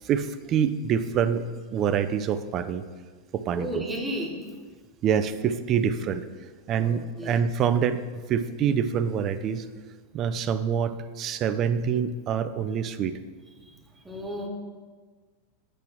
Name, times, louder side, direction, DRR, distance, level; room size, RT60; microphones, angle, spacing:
voice 1, 0.0-2.8 3.3-3.8 5.0-6.2 6.7-9.7 10.1-13.2, right 7 dB, 35° right, 11 dB, 0.4 m, -26 dB
voice 2, 3.5-4.4 6.8-7.4 13.6-13.8 14.0-14.5, equal, 10° right, 0 dB, 1.1 m, -33 dB
8.1 x 2.9 x 6.0 m, 1.5 s
figure-of-eight pair, 90°, 0 cm